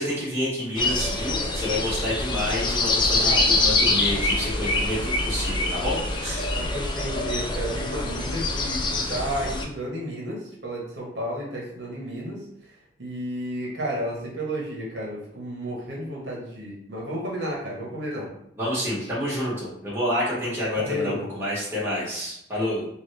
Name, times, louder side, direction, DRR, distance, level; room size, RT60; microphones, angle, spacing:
voice 1, 0.0-6.5 18.6-22.9, left 1 dB, 15° right, -9 dB, 1.1 m, -28 dB
sound 1, 0.8-9.7, left 2 dB, 25° left, 0.3 m, -25 dB
voice 2, 6.5-12.4 13.0-18.3 20.7-21.3, equal, 70° right, -4 dB, 0.9 m, -32 dB
2.8 x 2.3 x 3.2 m, 0.75 s
head